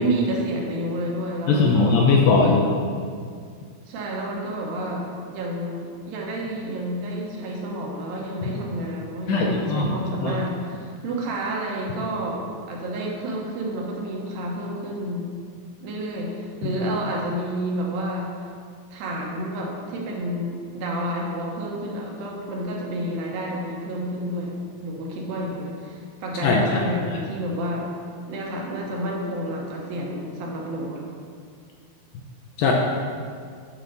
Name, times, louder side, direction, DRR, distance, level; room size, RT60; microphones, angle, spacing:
voice 1, 0.0-1.9 3.9-15.4 15.8-18.3 18.9-27.9 28.3-31.1, right 1 dB, 70° right, -2 dB, 2.6 m, -30 dB
voice 2, 1.5-2.7 9.3-9.9 10.2-10.4 26.4-26.9 27.1-27.2 32.6-32.7, left 4 dB, 80° left, -1 dB, 2.2 m, -19 dB
9.2 x 6.2 x 3.9 m, 2.1 s
omnidirectional pair, 4.5 m